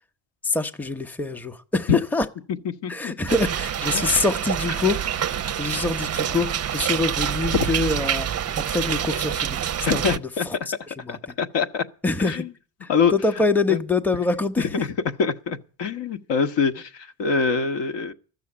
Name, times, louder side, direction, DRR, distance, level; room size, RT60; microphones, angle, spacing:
voice 1, 0.4-2.3 2.9-5.0 5.6-8.3 8.6-9.6 9.9-10.6 11.0-11.4 12.0-12.4 12.8-14.8, left 3 dB, 5° left, 0.9 m, -25 dB
voice 2, 2.8-3.1 3.9-4.2 9.8-10.5 11.1-11.8 12.2-12.5 12.9-13.1 13.7-13.8 14.6-14.9 15.2-18.1, left 5 dB, 55° left, 1.3 m, -24 dB
sound 1, 3.3-10.2, right 9 dB, 30° right, 0.6 m, -26 dB
13.5 x 6.9 x 9.8 m
supercardioid pair, 70°, 50 cm